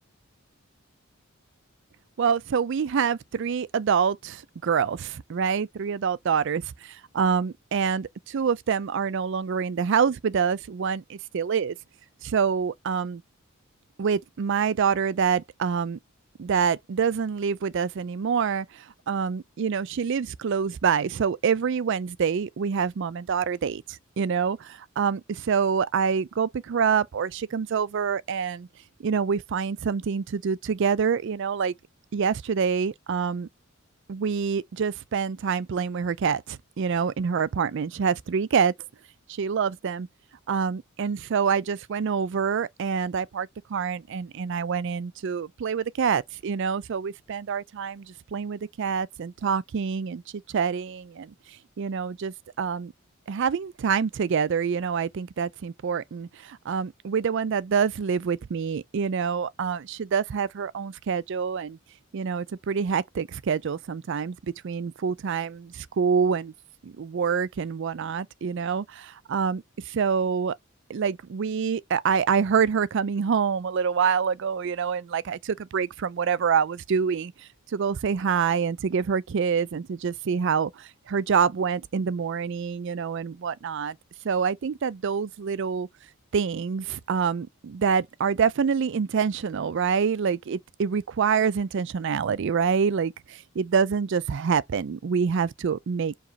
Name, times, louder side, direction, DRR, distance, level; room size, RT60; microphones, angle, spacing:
voice 1, 2.2-11.7 12.2-13.2 14.0-16.0 16.4-28.7 29.0-31.7 32.1-33.5 34.1-38.7 39.3-40.1 40.5-50.2 50.5-51.3 51.8-52.9 53.3-61.8 62.1-64.4 64.6-66.5 66.8-70.5 70.9-77.3 77.7-84.0 84.2-85.9 86.3-96.2, right 6 dB, 55° right, 0.4 m, -26 dB
4.8 x 3.0 x 2.7 m
head